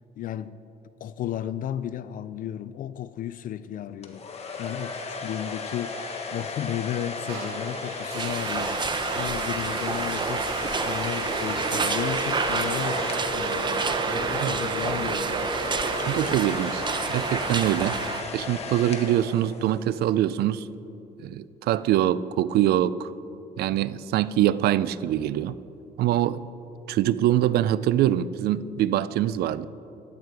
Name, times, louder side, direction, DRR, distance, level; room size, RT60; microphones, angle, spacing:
voice 1, 0.2-0.6 1.0-4.3 4.6-15.7 17.0-17.3 18.3-18.4, left 11 dB, 55° left, 0.4 m, -34 dB
sound 1, 4.0-14.2 15.2-19.9, left 3 dB, 40° left, 1.5 m, -36 dB
sound 2, 7.3-17.5, right 2 dB, 85° right, 2.2 m, -34 dB
sound 3, 8.1-18.2, right 4 dB, 25° right, 0.9 m, -29 dB
voice 2, 16.0-16.8 17.1-18.0 18.3-20.7 21.2-23.1 23.6-25.6 26.0-26.4 26.9-29.7, right 12 dB, 70° right, 0.5 m, -24 dB
15.5 x 11.0 x 4.8 m
cardioid pair, 110°, 17 cm